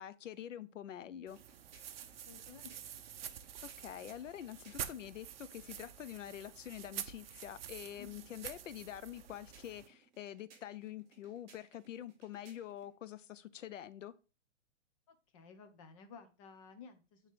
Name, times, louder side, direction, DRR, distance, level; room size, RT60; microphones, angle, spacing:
voice 1, 0.0-1.4 3.6-14.1, left 11 dB, 85° left, 0.8 m, -46 dB
sound 1, 1.2-5.1 9.0-12.9, right 5 dB, 40° right, 2.9 m, -65 dB
sound 2, 1.3-9.9, right 9 dB, 55° right, 0.7 m, -48 dB
voice 2, 2.0-3.0 8.0-8.3 15.1-17.3, left 5 dB, 30° left, 1.0 m, -55 dB
9.1 x 3.2 x 3.7 m
hypercardioid pair, 170°, 36 cm